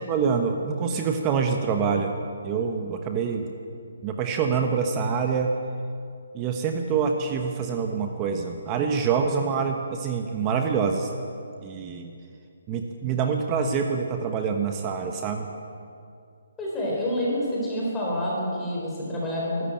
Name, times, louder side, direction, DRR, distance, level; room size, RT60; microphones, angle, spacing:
voice 1, 0.1-2.2 2.4-3.5 4.0-5.5 6.3-11.1 11.6-12.1 12.7-15.5, right 6 dB, 20° right, 4 dB, 1.1 m, -26 dB
voice 2, 16.6-19.7, equal, 10° left, -5 dB, 4.1 m, -28 dB
23.0 x 13.0 x 9.0 m, 2.4 s
hypercardioid pair, 165°, 0 cm